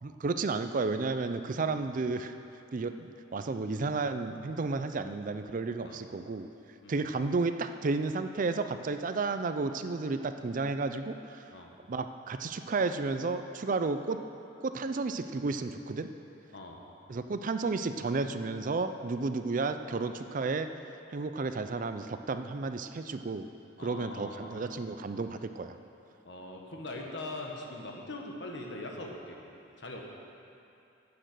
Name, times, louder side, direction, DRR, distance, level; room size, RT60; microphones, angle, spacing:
voice 1, 0.0-2.3 2.7-6.5 6.9-11.5 11.9-14.2 14.6-16.1 17.1-20.7 21.1-23.5 23.8-25.8, right 3 dB, 45° right, 9 dB, 0.5 m, -32 dB
voice 2, 23.8-24.7 26.2-29.4 29.8-30.0, left 2 dB, 65° left, 0 dB, 1.5 m, -42 dB
9.9 x 8.7 x 6.7 m, 2.8 s
head